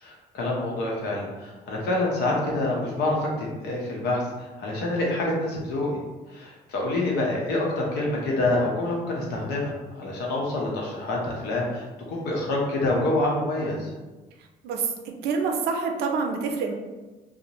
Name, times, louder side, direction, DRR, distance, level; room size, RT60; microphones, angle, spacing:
voice 1, 0.0-6.0 6.3-13.9, left 2 dB, 75° left, -2 dB, 0.8 m, -27 dB
voice 2, 14.6-16.7, right 5 dB, 75° right, 3 dB, 0.5 m, -27 dB
2.5 x 2.1 x 2.9 m, 1.2 s
cardioid pair, 110°, 17 cm